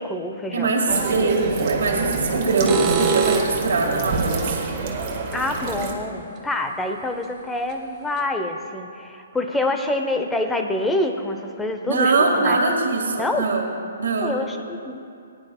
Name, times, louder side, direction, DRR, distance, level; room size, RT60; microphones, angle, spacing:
voice 1, 0.0-0.7 5.3-12.6 13.2-13.5 14.2-15.0, left 2 dB, 5° left, 5 dB, 0.7 m, -26 dB
voice 2, 0.5-4.6 11.9-13.6 14.0-14.4, right 3 dB, 75° right, -2 dB, 1.6 m, -22 dB
sound 1, 0.9-5.9, right 4 dB, 40° right, 1.3 m, -27 dB
sound 2, 1.4-1.6 2.4-3.7 6.4-6.5 7.2-7.3 7.7-7.8 8.2-8.3, right 5 dB, 20° right, 1.0 m, -24 dB
19.5 x 9.9 x 2.2 m, 2.4 s
hypercardioid pair, 140°, 0 cm